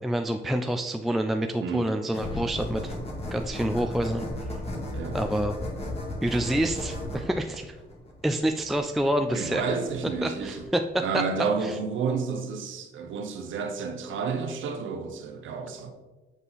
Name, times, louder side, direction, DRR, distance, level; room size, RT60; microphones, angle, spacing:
voice 1, 0.0-3.0 3.3-4.6 5.1-5.6 6.2-7.8 8.2-9.6 10.2-10.8 11.1-11.2 11.6-11.8, right 1 dB, ahead, 0.3 m, -27 dB
voice 2, 1.6-1.9 4.9-5.2 9.3-10.7 11.0-15.9, right 5 dB, 75° right, 0.9 m, -30 dB
sound 1, 2.1-10.7, left 1 dB, 30° left, 2.0 m, -35 dB
8.1 x 3.7 x 4.0 m
cardioid pair, 90°, 20 cm